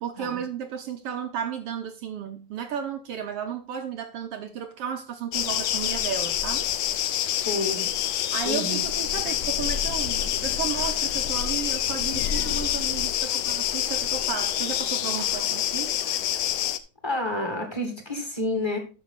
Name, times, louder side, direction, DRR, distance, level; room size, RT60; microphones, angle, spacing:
voice 1, 0.0-6.7 8.3-15.9, right 8 dB, 70° right, 1.6 m, -33 dB
sound 1, 5.3-16.8, left 11 dB, 70° left, 1.7 m, -27 dB
voice 2, 7.4-8.0 8.4-8.8 17.0-18.8, left 1 dB, 10° left, 1.5 m, -29 dB
13.0 x 5.9 x 4.0 m
omnidirectional pair, 3.3 m